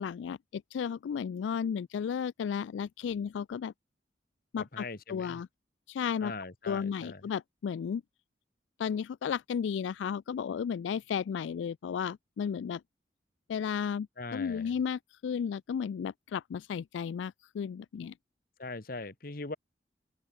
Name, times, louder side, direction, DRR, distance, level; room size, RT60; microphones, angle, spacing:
voice 1, 0.0-3.7 4.5-5.5 5.9-6.3 6.7-8.0 8.8-12.8 13.5-14.1 14.3-18.1, left 7 dB, 85° left, 0.3 m, -34 dB
voice 2, 4.6-5.4 6.2-7.2 14.2-14.7 18.6-19.6, left 3 dB, 50° left, 1.3 m, -41 dB
open air
head